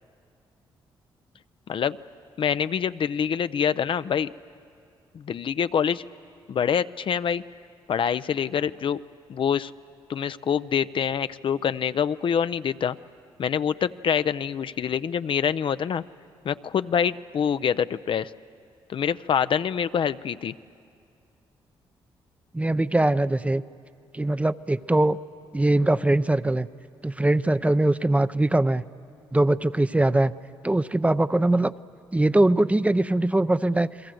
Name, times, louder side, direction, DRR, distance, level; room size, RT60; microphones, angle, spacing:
voice 1, 2.4-4.3 5.1-6.0 6.5-7.4 7.9-9.0 9.3-9.7 10.1-12.9 13.4-16.0 16.4-18.3 18.9-20.5, left 7 dB, 55° left, 13 dB, 0.5 m, -25 dB
voice 2, 22.5-23.6 24.1-25.2 25.5-26.7 27.0-28.8 29.3-30.3 30.6-31.7 32.1-34.1, right 2 dB, 15° right, 14 dB, 0.6 m, -22 dB
29.5 x 21.5 x 7.8 m, 2.4 s
supercardioid pair, 60°, 10 cm